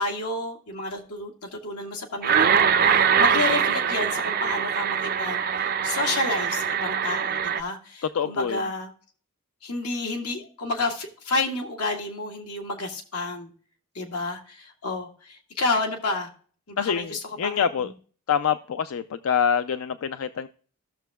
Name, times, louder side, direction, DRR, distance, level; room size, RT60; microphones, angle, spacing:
voice 1, 0.0-8.9 9.6-13.5 14.0-16.3 16.7-17.9, left 2 dB, 90° left, 2 dB, 1.8 m, -30 dB
sound 1, 2.2-7.6, right 7 dB, 40° right, 0.4 m, -23 dB
voice 2, 8.1-8.7 16.8-17.9 18.3-20.5, left 7 dB, 65° left, 12 dB, 0.4 m, -26 dB
14.5 x 6.8 x 2.2 m, 0.43 s
head